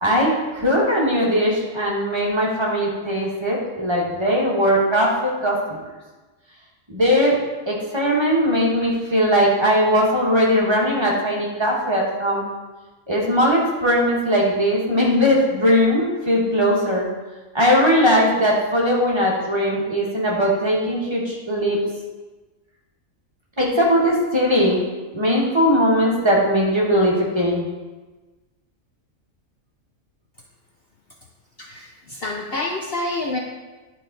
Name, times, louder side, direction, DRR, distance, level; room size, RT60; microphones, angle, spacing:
voice 1, 0.0-5.8 6.9-7.4 7.7-12.4 13.1-17.1 17.5-21.8 23.6-24.8 25.1-27.7, equal, 20° right, -4 dB, 1.3 m, -19 dB
voice 2, 31.6-33.4, left 2 dB, 55° left, 0 dB, 0.8 m, -28 dB
10.5 x 4.3 x 3.8 m, 1.2 s
omnidirectional pair, 1.4 m